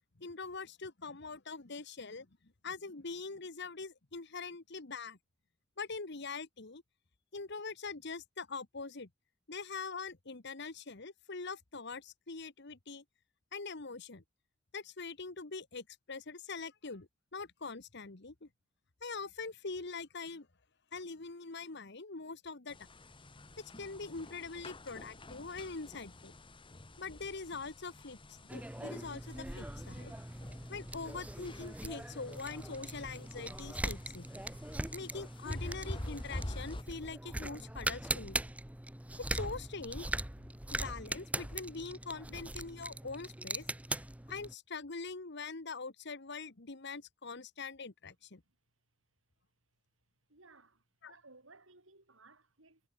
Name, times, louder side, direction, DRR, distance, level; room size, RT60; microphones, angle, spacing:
voice 1, 0.2-2.3 2.6-5.2 5.8-6.8 7.3-9.1 9.5-13.0 13.5-14.2 14.7-18.5 19.0-20.5 20.9-22.9 23.8-26.3 27.0-30.1 30.7-34.3 34.9-38.4 39.3-40.1 40.7-44.0 44.3-48.4 51.0-51.2, left 4 dB, 60° left, 1.4 m, -43 dB
sound 1, 22.7-36.8, left 1 dB, 25° left, 1.5 m, -47 dB
sound 2, 28.5-44.5, right 1 dB, 5° right, 0.7 m, -41 dB
voice 2, 50.3-52.8, right 3 dB, 80° right, 7.1 m, -60 dB
head